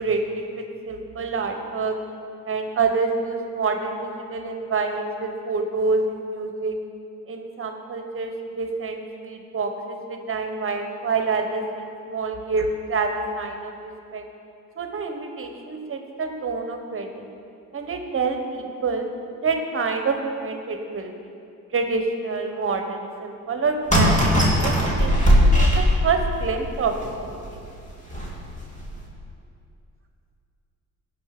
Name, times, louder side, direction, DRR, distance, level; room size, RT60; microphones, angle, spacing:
voice 1, 0.0-2.0 2.5-6.8 7.3-13.7 14.1-14.2 14.8-17.3 17.7-19.1 19.4-21.1 21.7-24.2 24.6-27.6, right 4 dB, 45° right, 5 dB, 1.2 m, -27 dB
sound 1, 23.9-26.4 27.0-27.1 27.4-27.5 28.1-28.4 28.8-29.0, equal, 25° left, 3.0 m, -18 dB
16.5 x 5.7 x 6.0 m, 2.6 s
cardioid pair, 90°, 30 cm